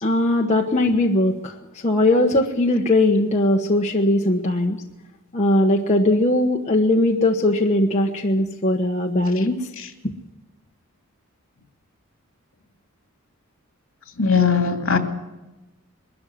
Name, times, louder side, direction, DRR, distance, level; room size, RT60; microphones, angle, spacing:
voice 1, 0.0-1.5 1.8-4.8 5.3-9.7, left 1 dB, 30° left, 0 dB, 1.3 m, -19 dB
voice 2, 14.2-15.0, left 5 dB, 65° left, 4 dB, 2.6 m, -19 dB
21.5 x 13.5 x 9.5 m, 1.0 s
head